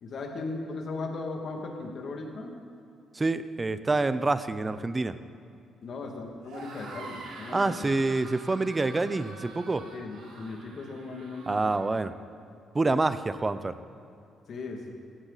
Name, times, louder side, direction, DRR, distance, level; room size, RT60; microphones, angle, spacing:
voice 1, 0.0-2.6 5.8-7.9 9.8-11.8 14.5-15.0, left 3 dB, 60° left, 2 dB, 2.3 m, -37 dB
voice 2, 3.1-5.2 7.5-9.8 11.5-12.1 12.7-13.8, right 3 dB, 25° right, 13 dB, 0.7 m, -27 dB
sound 1, 6.4-11.8, right 3 dB, 80° right, 3.5 m, -46 dB
17.0 x 14.0 x 4.1 m, 2.6 s
cardioid pair, 90°, 0 cm